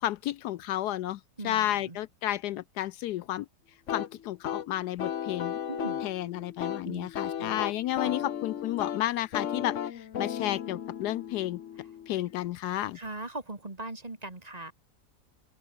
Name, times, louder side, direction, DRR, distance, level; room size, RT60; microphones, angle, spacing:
voice 1, 0.0-3.5 3.9-5.6 6.0-11.6 12.1-13.0, left 13 dB, 75° left, 1.1 m, -32 dB
voice 2, 1.4-2.0 5.7-6.0 6.8-7.1 7.4-7.6 8.0-8.2 12.9-14.7, right 2 dB, 25° right, 2.2 m, -40 dB
sound 1, 3.9-12.5, left 9 dB, 55° left, 1.1 m, -35 dB
open air
omnidirectional pair, 1.8 m